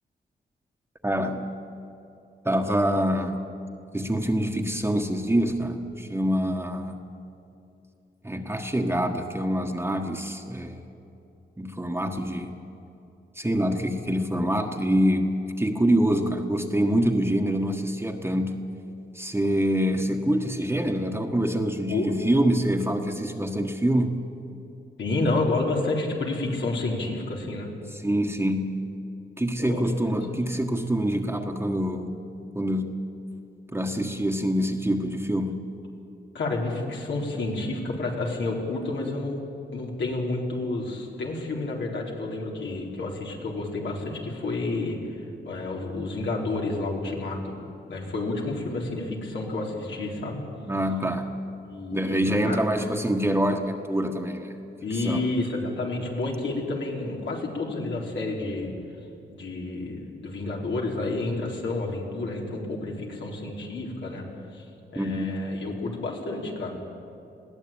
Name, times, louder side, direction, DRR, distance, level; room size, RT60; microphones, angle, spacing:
voice 1, 1.0-1.5 2.4-3.4 3.9-7.0 8.2-10.8 11.6-12.5 13.3-18.6 19.1-24.2 28.0-28.8 29.4-32.2 32.5-33.0 33.7-35.6 50.7-51.3 51.9-54.6 55.0-55.2 64.9-65.4, equal, 10° right, 2 dB, 1.6 m, -25 dB
voice 2, 25.0-27.7 29.6-30.4 36.3-39.4 39.7-47.5 47.9-50.4 51.6-52.7 54.8-58.7 59.3-64.2 64.5-64.6 64.9-66.7, left 2 dB, 80° left, -2 dB, 4.4 m, -30 dB
21.0 x 16.5 x 9.0 m, 2.8 s
cardioid pair, 75°, 19 cm